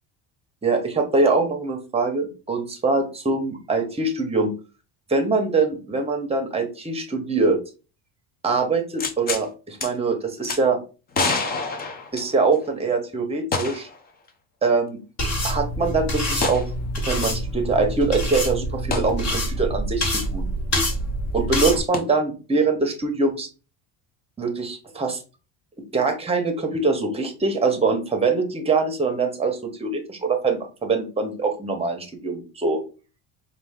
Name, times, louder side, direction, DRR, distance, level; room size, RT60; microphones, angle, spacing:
voice 1, 0.6-4.5 5.1-7.6 8.4-10.8 12.1-13.9 14.6-15.0 15.4-16.6 17.0-20.0 20.3-20.5 21.3-23.5 24.4-25.2 25.9-32.8, right 3 dB, 15° right, 4 dB, 0.8 m, -23 dB
sound 1, 9.0-9.5 9.8-9.9 10.4-10.6 11.1-12.6 13.5-14.0 14.3-14.4 16.4-16.7 18.9-19.1 21.9-22.0, left 4 dB, 25° left, 0.5 m, -26 dB
sound 2, 15.2-21.8, equal, 40° left, 1.6 m, -26 dB
4.5 x 2.4 x 3.5 m, 0.32 s
cardioid pair, 145°, 39 cm